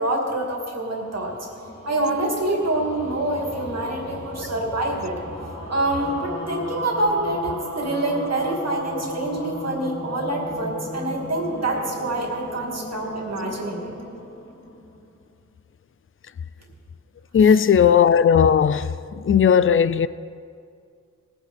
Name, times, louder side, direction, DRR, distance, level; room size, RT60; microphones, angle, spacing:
voice 1, 0.0-1.3 1.9-5.2 5.7-13.9 17.4-17.6, right 2 dB, 55° right, 2.5 m, -26 dB
sound 1, 0.7-15.2, equal, 90° left, 3.5 m, -35 dB
voice 2, 17.3-18.9 19.3-20.1, left 7 dB, 45° left, 0.4 m, -16 dB
19.0 x 9.5 x 4.3 m
wide cardioid pair, 65°, 31 cm